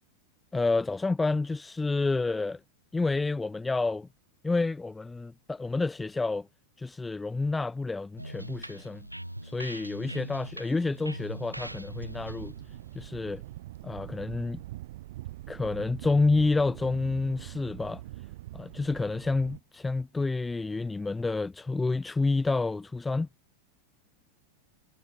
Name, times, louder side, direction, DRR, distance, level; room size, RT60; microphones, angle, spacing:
voice 1, 0.5-2.6 2.9-4.1 4.4-6.5 6.8-9.0 9.4-12.5 12.9-13.4 13.8-14.6 15.5-18.0 18.5-23.3, left 3 dB, 10° left, 1.6 m, -29 dB
sound 1, 8.2-13.8, right 1 dB, 90° right, 1.5 m, -42 dB
Thunder, 11.5-19.6, right 16 dB, 55° right, 4.3 m, -43 dB
figure-of-eight pair, 90°, 0 cm